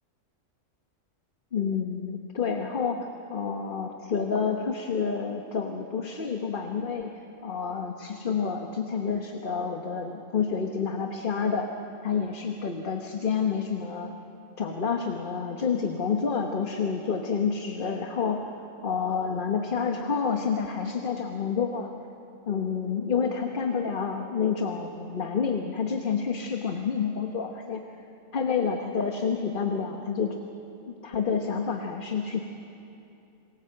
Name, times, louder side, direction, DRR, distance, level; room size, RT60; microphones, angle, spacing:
voice 1, 1.5-7.1 7.4-11.7 12.0-14.1 14.6-18.4 18.8-21.9 22.5-27.8 28.3-30.3 30.9-32.4, left 6 dB, 45° left, 4 dB, 1.3 m, -29 dB
27.5 x 19.5 x 7.8 m, 2.8 s
omnidirectional pair, 1.3 m